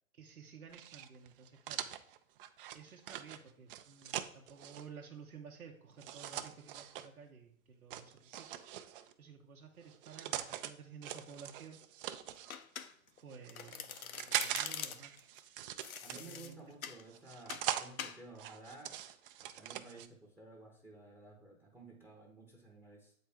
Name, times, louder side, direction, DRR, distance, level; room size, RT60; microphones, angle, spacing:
voice 1, 0.1-1.9 2.7-8.6 9.2-11.8 13.2-15.1 16.1-16.6, right 6 dB, 90° right, 0 dB, 0.9 m, -53 dB
sound 1, 0.7-4.8 6.0-7.1 7.9-9.1 9.8-10.7 11.0-12.5 13.2-14.7 15.0-16.5 17.1-17.9 18.4-20.1, right 11 dB, 40° right, 0.5 m, -41 dB
Domestic sounds home sounds, 12.5-13.2 13.5-15.2 15.8-17.0 17.5-17.7 18.0-18.2, left 8 dB, 80° left, 0.7 m, -44 dB
voice 2, 16.0-19.0 19.4-23.1, right 2 dB, 5° right, 1 dB, 0.7 m, -54 dB
7.8 x 4.3 x 3.4 m, 0.66 s
hypercardioid pair, 115°, 42 cm